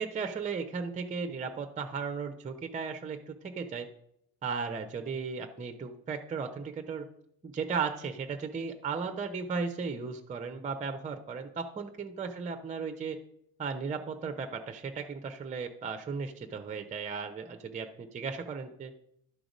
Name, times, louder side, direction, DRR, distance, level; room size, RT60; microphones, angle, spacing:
voice 1, 0.0-3.9 4.4-7.1 7.4-13.2 13.6-18.9, right 5 dB, 15° right, 7 dB, 0.7 m, -36 dB
11.5 x 5.0 x 6.1 m, 0.74 s
figure-of-eight pair, 60°, 47 cm